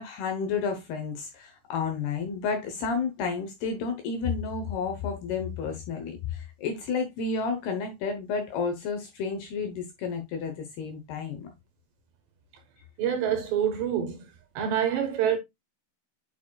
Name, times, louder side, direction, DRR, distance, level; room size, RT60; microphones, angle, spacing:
voice 1, 0.0-11.5, left 5 dB, 70° left, 2.6 m, -31 dB
voice 2, 13.0-14.2 14.6-15.4, right 9 dB, 70° right, 3.0 m, -26 dB
8.7 x 5.7 x 2.3 m
omnidirectional pair, 5.7 m